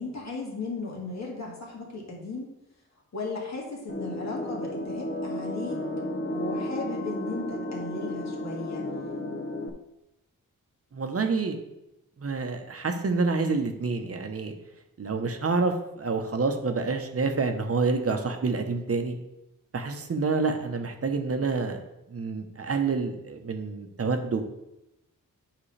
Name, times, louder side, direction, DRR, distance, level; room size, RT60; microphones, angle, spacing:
voice 1, 0.0-2.5 3.1-5.8 6.3-8.9, left 3 dB, 55° left, -2 dB, 1.8 m, -36 dB
sound 1, 3.9-9.7, left 1 dB, 30° left, 0.8 m, -33 dB
voice 2, 10.9-11.6 12.2-14.5 15.0-19.2 19.7-21.8 22.1-24.4, right 4 dB, 45° right, 5 dB, 0.9 m, -28 dB
8.6 x 6.1 x 3.3 m, 0.88 s
wide cardioid pair, 130°, 34 cm